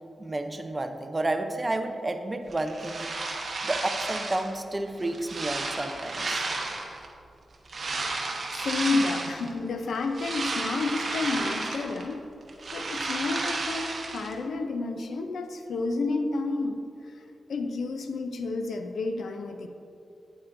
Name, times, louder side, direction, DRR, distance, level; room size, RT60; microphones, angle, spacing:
voice 1, 0.2-3.1 3.6-6.5, right 2 dB, 25° right, 6 dB, 0.6 m, -31 dB
sound 1, 2.5-4.5 5.0-7.1 7.7-9.5 9.9-12.1 12.4-14.3, right 3 dB, 55° right, 1.1 m, -32 dB
voice 2, 8.5-12.2 12.7-16.8 17.1-17.2 17.5-19.7, left 3 dB, 80° left, 6 dB, 0.6 m, -30 dB
8.9 x 8.7 x 2.6 m, 2.6 s
cardioid pair, 80°, 0 cm